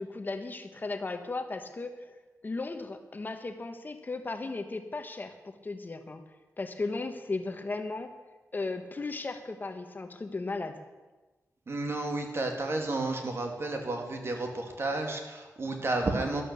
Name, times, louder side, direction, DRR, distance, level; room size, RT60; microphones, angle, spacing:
voice 1, 0.0-2.1 2.4-6.2 6.6-8.1 8.5-10.8, left 3 dB, 30° left, 7 dB, 1.1 m, -36 dB
voice 2, 11.7-16.4, right 2 dB, 45° right, 3 dB, 2.5 m, -31 dB
13.0 x 12.0 x 7.0 m, 1.2 s
wide cardioid pair, 130°, 6 cm